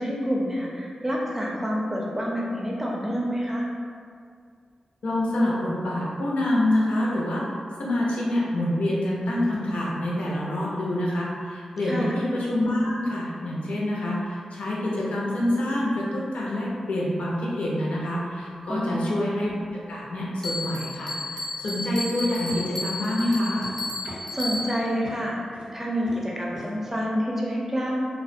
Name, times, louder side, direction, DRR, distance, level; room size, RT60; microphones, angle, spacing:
voice 1, 0.0-3.7 11.8-12.2 18.7-19.1 24.0-28.0, equal, 15° right, -3 dB, 0.5 m, -28 dB
voice 2, 5.0-7.4 7.8-19.5 19.9-23.6, left 1 dB, 85° left, -5 dB, 0.5 m, -26 dB
Bell, 20.4-24.9, left 2 dB, 30° left, 0.7 m, -33 dB
sound 1, 21.3-21.5 22.5-22.9 23.6-23.8 24.1-24.7 25.0-25.2 25.5-25.8 26.1-26.3 26.5-26.7, right 1 dB, 60° right, 0.5 m, -41 dB
2.4 x 2.1 x 2.6 m, 2.2 s
cardioid pair, 55°, 2 cm